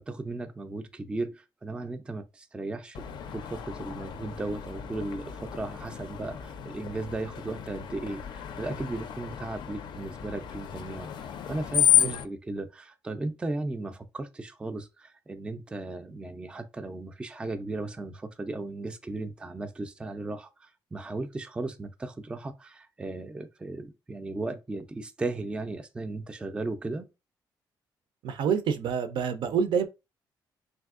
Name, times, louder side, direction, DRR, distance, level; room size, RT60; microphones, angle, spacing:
voice 1, 0.0-3.0 3.3-11.1 11.5-27.0, right 2 dB, 10° right, 0.3 m, -36 dB
Screech, 2.9-12.3, left 10 dB, 70° left, 0.4 m, -31 dB
voice 2, 28.2-29.9, right 7 dB, 75° right, 0.4 m, -27 dB
3.4 x 2.7 x 2.4 m
cardioid pair, 130°, 8 cm